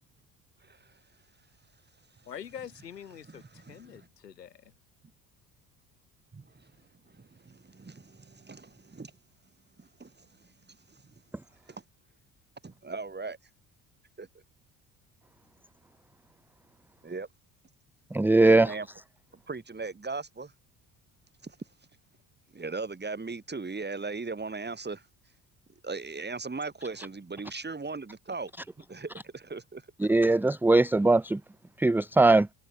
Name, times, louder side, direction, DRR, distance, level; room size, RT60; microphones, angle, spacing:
voice 1, 0.6-0.9 3.3-4.1 6.3-6.7 7.1-9.1 9.8-11.1 11.7-11.8 12.6-13.4 14.2-14.3 17.0-17.3 18.4-18.9 19.5-20.5 21.4-21.6 22.5-25.0 25.8-29.8, right 4 dB, 20° right, 7.6 m, -39 dB
voice 2, 2.2-4.7, left 9 dB, 80° left, 6.7 m, -45 dB
voice 3, 18.1-18.7 30.1-31.4 31.8-32.5, right 2 dB, 5° right, 0.7 m, -20 dB
figure-of-eight pair, 55°, 48 cm